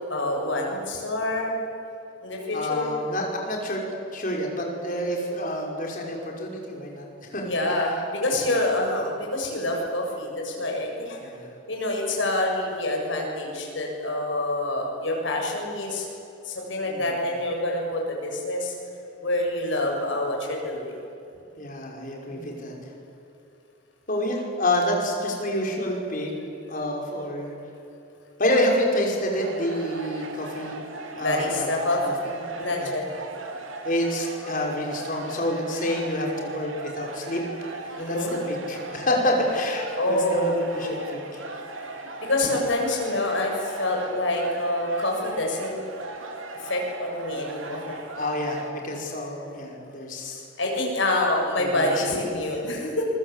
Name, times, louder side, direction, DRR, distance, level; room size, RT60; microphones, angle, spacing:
voice 1, 0.1-1.6 2.2-2.9 7.4-11.2 11.7-16.1 16.4-18.7 19.2-21.0 22.3-22.6 31.2-32.0 32.6-33.1 38.0-38.3 39.9-40.5 42.2-45.8 46.6-48.0 50.6-53.0, left 1 dB, 65° left, 0 dB, 7.2 m, -27 dB
voice 2, 2.5-3.8 4.1-7.5 11.2-11.5 16.9-17.1 21.6-22.7 24.1-26.3 26.7-27.6 28.4-30.7 31.2-31.5 32.1-32.3 32.8-32.9 33.8-37.4 37.8-41.4 48.2-50.4 51.6-52.0, left 1 dB, 40° left, 0 dB, 5.6 m, -28 dB
sound 1, 29.4-48.7, right 2 dB, 75° right, 3.1 m, -38 dB
27.5 x 23.0 x 8.4 m, 2.8 s
head